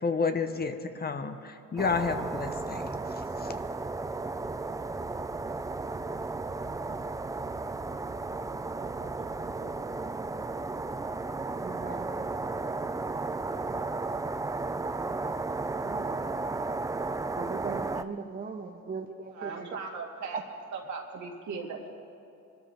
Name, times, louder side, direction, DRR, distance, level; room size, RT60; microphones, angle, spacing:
voice 1, 0.0-3.5, left 4 dB, 30° left, 8 dB, 0.9 m, -31 dB
sound 1, 1.8-18.0, right 3 dB, 10° right, 0.4 m, -34 dB
voice 2, 8.8-10.0 11.6-12.3 15.8-16.3 17.4-19.8 20.3-20.4, right 5 dB, 30° right, 4 dB, 0.9 m, -40 dB
voice 3, 19.3-20.4 20.7-21.9, right 5 dB, 70° right, 1 dB, 2.3 m, -38 dB
23.5 x 13.0 x 3.5 m, 2.6 s
cardioid pair, 90°, 30 cm